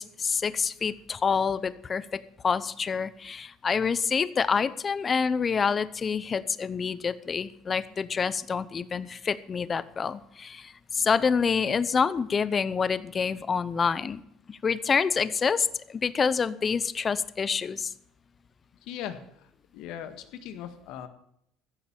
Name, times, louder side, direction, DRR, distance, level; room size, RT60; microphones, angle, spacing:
voice 1, 0.0-14.2 14.5-17.9, left 6 dB, 30° left, 16 dB, 0.8 m, -27 dB
voice 2, 18.8-19.5 19.7-21.1, left 10 dB, 70° left, 9 dB, 1.7 m, -39 dB
15.0 x 7.2 x 8.8 m, 0.73 s
supercardioid pair, 100°, 0 cm